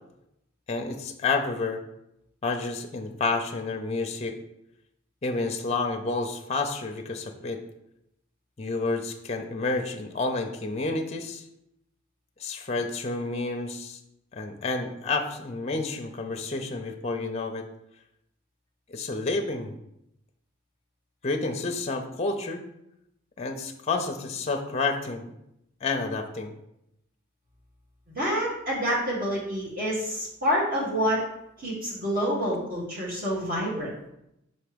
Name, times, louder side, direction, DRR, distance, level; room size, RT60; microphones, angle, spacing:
voice 1, 0.7-1.8 2.4-4.4 5.2-7.6 8.6-11.4 12.4-14.0 14.3-17.7 18.9-19.7 21.2-22.6 23.4-25.3 25.8-26.5, left 3 dB, 30° left, 5 dB, 0.5 m, -30 dB
voice 2, 28.1-31.2 31.6-33.9, equal, 45° right, -6 dB, 1.7 m, -27 dB
5.5 x 3.4 x 5.0 m, 0.82 s
head